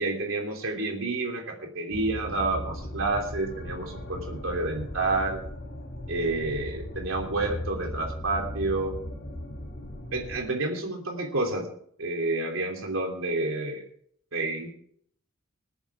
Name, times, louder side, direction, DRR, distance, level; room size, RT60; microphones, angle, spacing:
voice 1, 0.0-5.4 6.1-9.0 10.1-11.7 12.0-13.8 14.3-14.7, right 2 dB, 75° right, 1 dB, 3.0 m, -29 dB
sound 1, 1.9-10.4, left 1 dB, 55° left, 3.6 m, -37 dB
20.0 x 13.5 x 3.6 m, 0.63 s
head